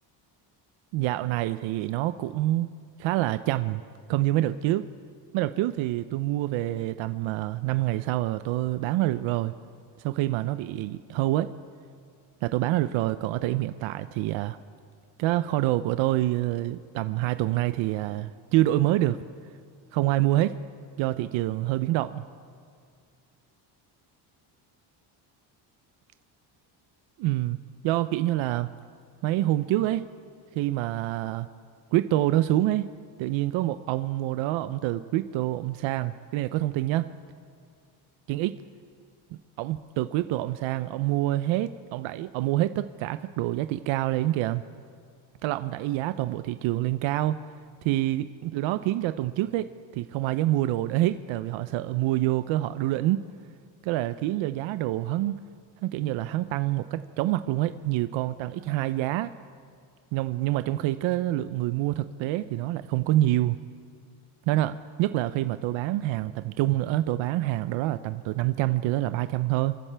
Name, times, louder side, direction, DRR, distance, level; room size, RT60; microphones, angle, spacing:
voice 1, 0.9-2.7 3.0-3.8 4.1-4.8 5.3-9.5 10.0-11.5 12.4-14.6 15.2-19.2 19.9-20.5 21.0-22.2 27.2-27.6 27.8-28.7 29.2-30.0 30.5-31.5 31.9-32.8 33.2-37.0 38.3-38.5 39.6-44.6 45.4-47.4 47.8-49.7 49.9-53.2 53.8-55.4 55.8-59.3 60.1-63.6 64.5-69.8, right 15 dB, 75° right, 12 dB, 0.6 m, -26 dB
27.0 x 15.0 x 3.4 m, 2.2 s
cardioid pair, 125°, 47 cm